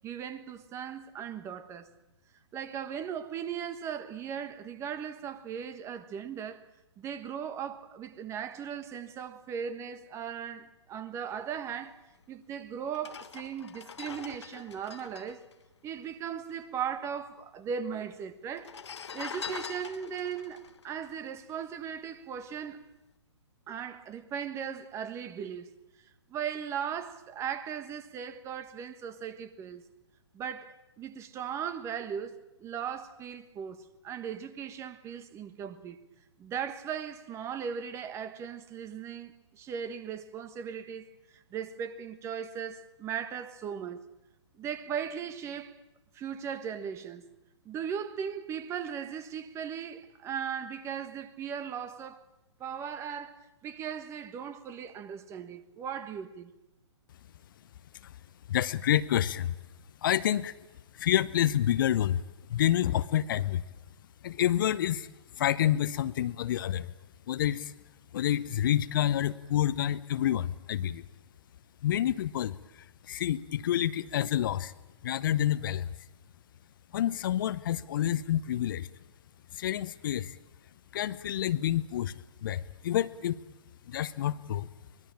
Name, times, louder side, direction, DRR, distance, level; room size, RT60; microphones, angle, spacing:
voice 1, 0.0-1.9 2.5-6.6 7.0-12.0 12.3-15.4 15.8-18.7 19.1-22.9 23.7-25.7 26.3-29.8 30.3-36.0 36.4-44.1 44.6-45.8 46.1-47.3 47.6-52.2 52.6-56.5, right 8 dB, 20° right, 1.4 m, -38 dB
sound 1, 12.2-12.3 12.9-16.6 16.8-16.9 17.1-17.8 18.5-22.0 22.4-22.6, left 6 dB, 70° left, 1.2 m, -44 dB
voice 2, 58.5-59.5 60.0-60.5 60.9-62.2 62.5-63.6 64.2-65.1 65.4-66.9 67.3-67.7 68.1-71.0 71.8-74.7 75.0-75.9 76.9-78.9 79.5-80.4 80.9-83.4 83.9-84.7, left 11 dB, 45° left, 0.9 m, -28 dB
24.0 x 21.0 x 8.9 m
figure-of-eight pair, 125°, 15 cm